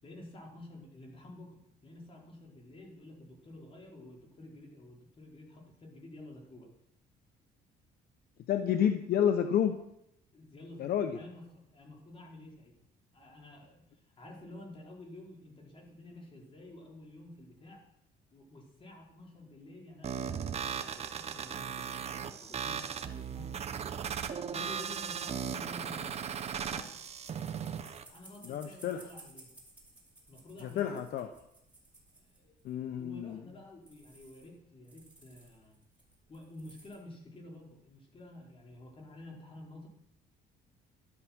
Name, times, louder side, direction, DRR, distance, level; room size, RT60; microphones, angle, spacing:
voice 1, 0.0-6.7 10.3-12.7 13.1-17.8 18.3-23.9 24.5-26.3 26.6-26.9 28.1-29.5 30.3-31.0 32.3-35.8 36.3-39.9, left 1 dB, 30° left, -1 dB, 5.0 m, -51 dB
voice 2, 8.5-9.8 10.8-11.2 28.4-29.0 30.6-31.3 32.6-33.4, left 9 dB, 65° left, 8 dB, 1.0 m, -30 dB
sound 1, 20.0-28.0, right 7 dB, 40° right, 1.3 m, -37 dB
sound 2, 26.8-32.7 33.2-33.3 33.5-33.6 33.8-34.5 34.8-37.0, right 2 dB, 10° right, 6.2 m, -58 dB
12.5 x 12.5 x 6.2 m, 0.78 s
cardioid pair, 110°, 17 cm